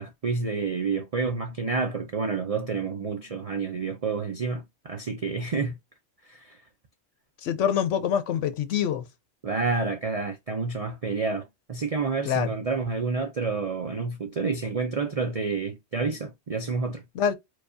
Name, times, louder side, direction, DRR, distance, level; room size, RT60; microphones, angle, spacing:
voice 1, 0.0-5.8 6.2-6.6 9.4-17.0, right 4 dB, 55° right, 0.4 m, -29 dB
voice 2, 7.4-9.1 12.3-12.5 17.2-17.3, left 8 dB, 70° left, 0.9 m, -25 dB
4.8 x 2.3 x 2.5 m
omnidirectional pair, 1.4 m